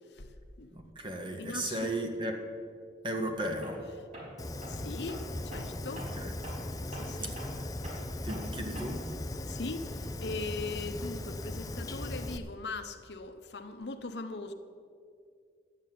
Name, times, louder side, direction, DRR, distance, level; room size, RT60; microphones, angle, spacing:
voice 1, 0.7-2.4 3.0-3.8 6.2-6.3 7.2-7.3 8.2-9.0, right 1 dB, 25° right, 4 dB, 1.4 m, -35 dB
voice 2, 1.4-1.9 4.7-6.1 6.9-7.4 9.5-14.5, left 3 dB, 80° left, 8 dB, 0.9 m, -40 dB
Tools, 3.6-3.9 4.1-9.2, right 1 dB, 45° right, 4.2 m, -45 dB
Fire, 4.4-12.4, left 1 dB, 20° left, 0.5 m, -38 dB
11.0 x 8.3 x 9.2 m, 2.2 s
head